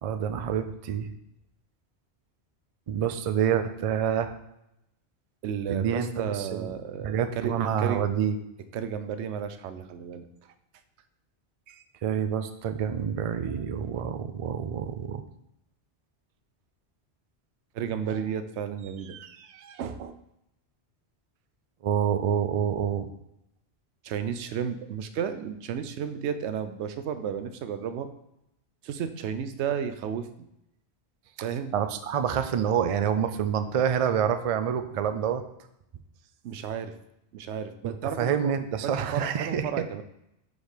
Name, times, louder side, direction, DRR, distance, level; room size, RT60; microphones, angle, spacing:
voice 1, 0.0-1.1 2.9-4.3 5.7-6.7 7.0-8.4 12.0-15.2 21.8-23.1 31.7-35.4 37.8-39.7, right 8 dB, 60° right, 9 dB, 0.3 m, -27 dB
voice 2, 5.4-8.1 8.7-10.3 11.7-11.8 17.7-20.1 24.0-28.1 28.8-30.3 31.4-31.7 36.4-36.9 37.3-38.5 38.9-40.0, right 8 dB, 85° right, 10 dB, 0.9 m, -33 dB
5.0 x 4.0 x 5.0 m, 0.82 s
omnidirectional pair, 1.1 m